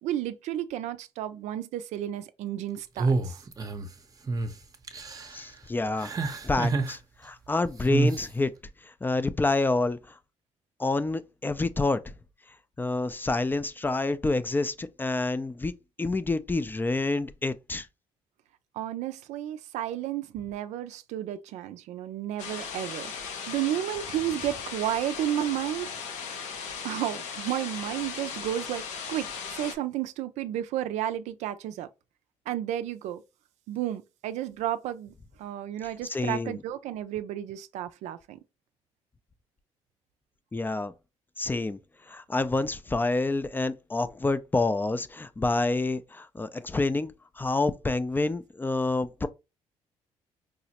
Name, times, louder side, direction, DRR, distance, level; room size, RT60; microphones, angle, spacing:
voice 1, 0.0-3.4 18.7-23.1 23.5-25.9 26.8-28.8 29.1-31.9 32.5-33.2 33.7-38.4, right 12 dB, 80° right, 0.4 m, -32 dB
sound 1, 3.0-3.9 4.3-4.5 4.9-5.4 6.0-6.9 7.9-8.2, right 3 dB, 30° right, 0.6 m, -27 dB
voice 2, 5.3-6.1 6.4-8.5 8.8-10.0 10.8-12.1 12.8-15.7 16.0-17.9 36.1-36.6 40.5-40.9 41.4-41.8 42.1-49.3, left 2 dB, 15° left, 0.3 m, -28 dB
sound 2, 22.4-29.7, left 6 dB, 80° left, 0.7 m, -37 dB
4.8 x 2.0 x 2.8 m
supercardioid pair, 70°, 12 cm